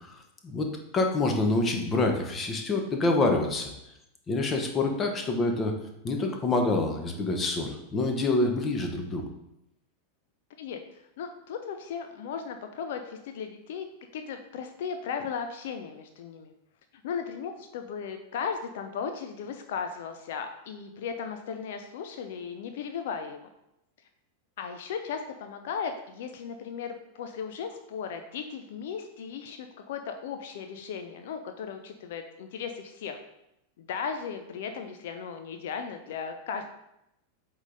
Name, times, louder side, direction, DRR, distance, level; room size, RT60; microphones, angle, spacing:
voice 1, 0.9-3.7 4.3-5.7 6.0-9.2, left 2 dB, 25° left, 3 dB, 1.1 m, -26 dB
voice 2, 10.6-13.9 14.1-16.5 17.0-23.4 24.6-33.2 33.8-36.7, left 6 dB, 55° left, 6 dB, 0.6 m, -36 dB
7.9 x 3.8 x 4.0 m, 0.83 s
figure-of-eight pair, 90°, 0 cm